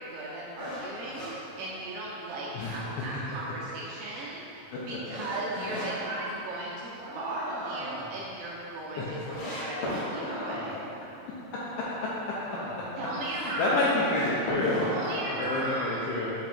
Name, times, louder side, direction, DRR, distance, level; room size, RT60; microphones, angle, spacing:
voice 1, 0.0-10.8 13.0-13.8 14.8-16.0, right 2 dB, 80° right, -6 dB, 2.9 m, -36 dB
sound 1, 0.6-2.3 2.7-2.8 3.3-5.9 6.3-7.0 7.4-7.5 7.8-7.9 8.1-8.2 8.8-8.9 9.3-10.1 13.8-15.7, left 1 dB, 65° left, 2.2 m, -37 dB
voice 2, 2.5-2.9 4.7-4.8 5.5-5.7 9.0-9.6 11.5-12.1 13.3-14.8 15.4-16.3, left 2 dB, 80° left, -7 dB, 2.6 m, -29 dB
sound 2, 7.0-8.2 10.0-10.9 12.4-13.1 14.7-15.5, right 1 dB, 60° right, 1.8 m, -39 dB
8.3 x 3.5 x 5.7 m, 3.0 s
omnidirectional pair, 5.9 m